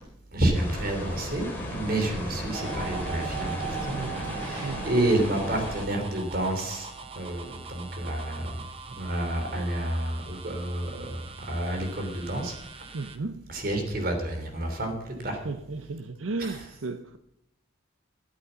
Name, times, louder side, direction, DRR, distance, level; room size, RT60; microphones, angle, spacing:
voice 1, 0.3-4.0 4.3-6.9 7.1-8.6 9.0-12.6 13.5-15.4 16.4-16.6, right 1 dB, 45° right, 4 dB, 3.2 m, -29 dB
sound 1, 0.5-5.9, equal, 10° left, 3.3 m, -35 dB
sound 2, 2.5-13.2, right 6 dB, 30° right, 1.0 m, -41 dB
voice 2, 3.9-4.9 12.9-13.4 15.2-17.2, right 3 dB, 75° right, 9 dB, 0.7 m, -35 dB
14.0 x 8.3 x 6.9 m, 0.81 s
head